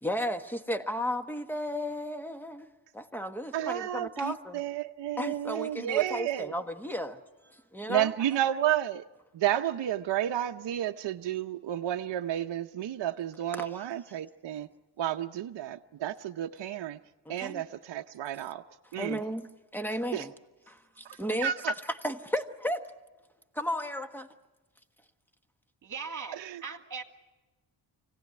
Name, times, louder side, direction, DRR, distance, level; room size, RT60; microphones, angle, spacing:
voice 1, 0.0-2.7 2.9-4.6 5.2-7.2 7.5-8.1 13.6-13.7 17.2-17.6 19.0-20.3 20.7-21.5 22.0-22.8 23.5-24.3, equal, 5° left, 8 dB, 1.3 m, -34 dB
voice 2, 3.5-6.5 7.9-9.0 9.3-14.7 15.0-17.0 17.3-18.6 18.9-19.2 20.1-20.3 21.0-21.7 26.3-26.6, right 12 dB, 65° right, 4 dB, 0.8 m, -31 dB
voice 3, 25.8-27.0, right 5 dB, 40° right, 5 dB, 2.4 m, -40 dB
25.0 x 17.5 x 9.5 m, 1.1 s
cardioid pair, 90°, 46 cm